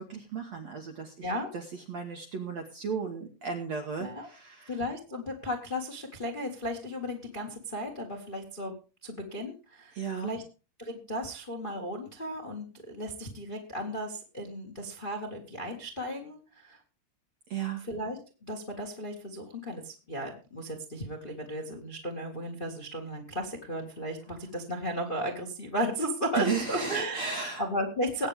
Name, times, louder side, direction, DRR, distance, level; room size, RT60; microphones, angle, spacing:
voice 1, 0.0-4.8 9.9-10.3 17.5-17.8 26.3-27.6, right 6 dB, 65° right, 3 dB, 1.7 m, -35 dB
voice 2, 4.7-8.7 9.0-10.4 10.8-16.8 17.9-27.2 27.6-28.3, equal, 75° left, 4 dB, 0.4 m, -35 dB
21.0 x 8.8 x 3.5 m, 0.33 s
omnidirectional pair, 5.0 m